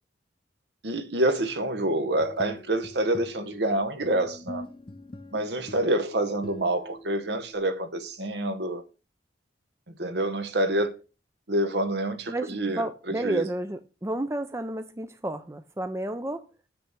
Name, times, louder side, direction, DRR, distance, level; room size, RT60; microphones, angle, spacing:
voice 1, 0.8-4.7 5.3-8.8 10.0-10.9 11.5-13.5, right 1 dB, 70° right, 1.1 m, -27 dB
sound 1, 2.0-7.6, left 1 dB, 30° left, 0.6 m, -44 dB
voice 2, 12.3-16.5, right 1 dB, 15° right, 0.5 m, -31 dB
6.7 x 6.0 x 6.0 m
head